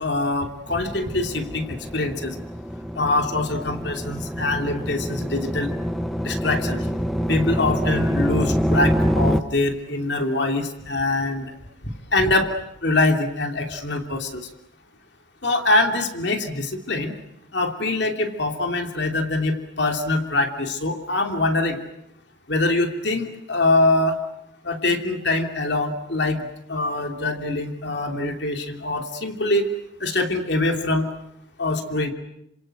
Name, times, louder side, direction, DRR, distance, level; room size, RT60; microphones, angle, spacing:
voice 1, 0.0-2.3 3.0-5.7 6.2-6.8 7.3-11.5 12.1-12.5 12.8-14.5 15.4-17.1 17.5-21.8 22.5-24.2 24.6-26.4 26.7-29.7 30.0-31.1 31.6-32.1, left 2 dB, 60° left, 4 dB, 3.0 m, -23 dB
sound 1, 0.7-9.4, equal, ahead, 1.0 m, -26 dB
28.0 x 26.5 x 7.9 m, 0.76 s
head